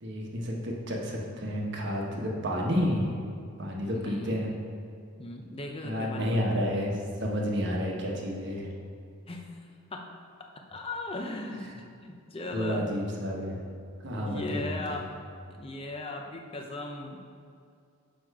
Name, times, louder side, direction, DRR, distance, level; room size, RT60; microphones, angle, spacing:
voice 1, 0.0-3.1 3.6-4.5 5.8-8.7 12.5-13.6 14.0-15.0, equal, 50° right, -1 dB, 1.1 m, -30 dB
voice 2, 3.9-4.4 5.2-6.4 9.3-10.1 10.7-12.9 14.3-15.1 15.5-17.2, left 2 dB, 25° left, 2 dB, 0.5 m, -38 dB
6.7 x 6.0 x 4.7 m, 2.4 s
head